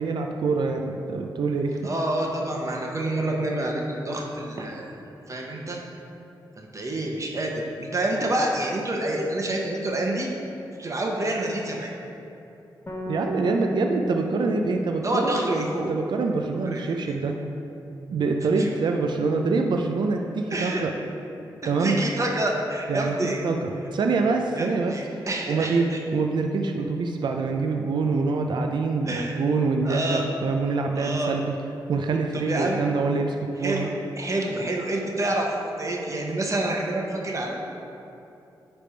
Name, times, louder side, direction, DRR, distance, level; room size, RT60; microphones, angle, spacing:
voice 1, 0.0-1.9 13.1-17.4 18.1-20.9 21.6-22.0 22.9-23.2 23.4-24.9 25.5-25.9 26.1-31.6 31.9-33.9, right 4 dB, 70° right, 3 dB, 0.5 m, -25 dB
voice 2, 1.8-4.9 5.3-5.8 6.6-10.3 10.8-11.9 15.0-15.9 16.6-17.1 18.6-18.7 20.5-20.8 21.6-23.4 24.6-26.0 29.1-29.3 29.8-30.3 30.9-31.3 32.3-32.8 33.6-35.5 35.8-37.5, right 1 dB, 40° right, 0 dB, 1.1 m, -28 dB
sound 1, 12.9-16.4, left 1 dB, 25° left, 1.2 m, -34 dB
10.0 x 3.4 x 4.4 m, 2.8 s
cardioid pair, 65°, 8 cm